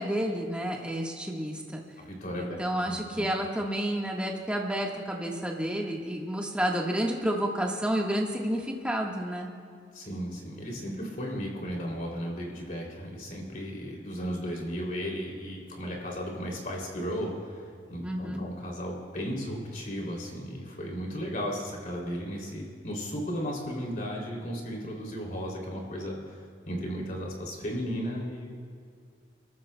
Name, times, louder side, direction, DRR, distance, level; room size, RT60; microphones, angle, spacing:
voice 1, 0.0-1.8 2.3-9.5 18.0-18.4, equal, 5° right, -1 dB, 1.4 m, -30 dB
voice 2, 2.0-2.6 2.8-3.3 9.9-28.6, equal, 50° left, -1 dB, 2.9 m, -35 dB
27.5 x 13.5 x 2.2 m, 2.2 s
head